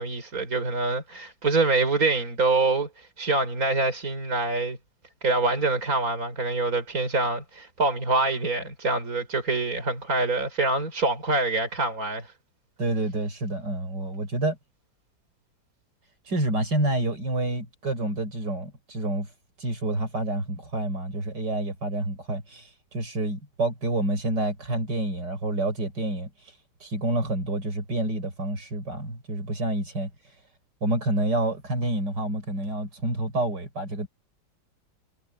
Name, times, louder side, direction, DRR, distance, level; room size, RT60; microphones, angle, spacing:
voice 1, 0.0-4.8 5.2-12.3, right 3 dB, 55° right, 5.4 m, -25 dB
voice 2, 12.8-14.6 16.3-19.3 19.6-26.3 26.8-30.1 30.8-34.1, right 1 dB, 80° right, 6.4 m, -28 dB
omnidirectional pair, 1.8 m